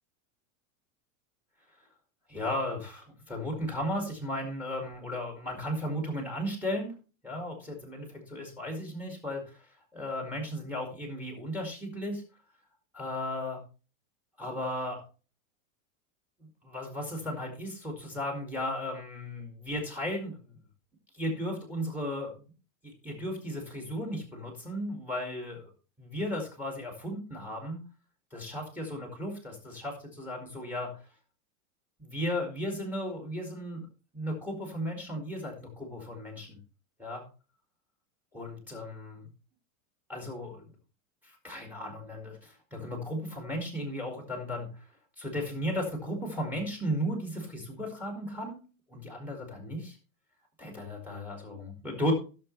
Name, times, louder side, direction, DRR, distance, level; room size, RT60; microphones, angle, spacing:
voice 1, 2.3-6.9 7.2-12.2 12.9-13.6 14.4-15.0 16.4-20.5 21.1-22.4 22.8-25.7 26.0-27.8 28.3-31.0 32.0-33.9 34.1-36.6 37.0-37.2 38.3-39.3 40.1-40.7 41.2-44.9 45.2-48.6 48.9-50.0 50.6-52.1, equal, 5° right, 2 dB, 2.1 m, -35 dB
16.0 x 6.6 x 3.2 m, 0.36 s
supercardioid pair, 170°, 41 cm